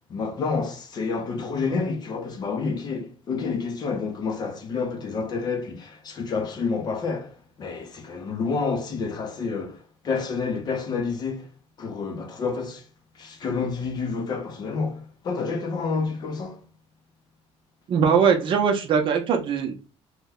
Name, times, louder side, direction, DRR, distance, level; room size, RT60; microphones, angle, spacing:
voice 1, 0.1-11.5 11.8-12.8 13.2-16.6, left 4 dB, 35° left, 0.5 m, -29 dB
voice 2, 17.9-19.7, right 6 dB, 45° right, 0.6 m, -21 dB
2.9 x 2.1 x 3.5 m
cardioid pair, 155°, 12 cm